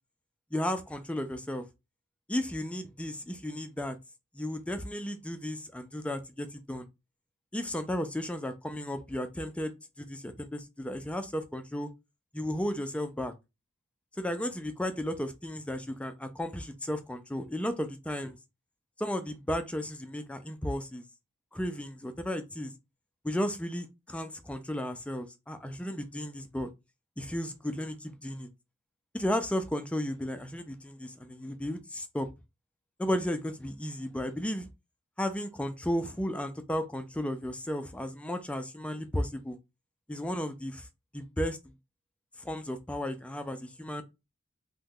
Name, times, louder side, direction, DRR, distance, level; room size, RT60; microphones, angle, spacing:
voice 1, 0.5-1.6 2.3-4.0 4.3-6.9 7.5-11.9 12.3-13.3 14.2-18.4 19.0-21.0 21.5-22.7 23.2-26.7 27.2-28.5 29.1-32.3 33.0-34.7 35.2-39.6 40.1-40.9 41.1-41.6 42.4-44.0, equal, 5° left, 0.3 m, -34 dB
2.9 x 2.2 x 3.6 m
head